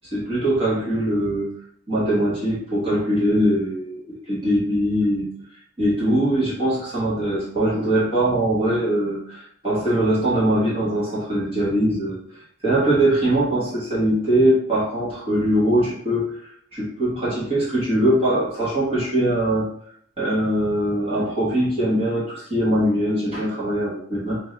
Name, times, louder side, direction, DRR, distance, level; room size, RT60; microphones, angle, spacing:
voice 1, 0.1-1.5 1.9-5.3 5.8-12.2 12.6-19.7 20.2-24.4, right 1 dB, 25° right, -9 dB, 1.0 m, -22 dB
3.1 x 2.6 x 3.8 m, 0.65 s
head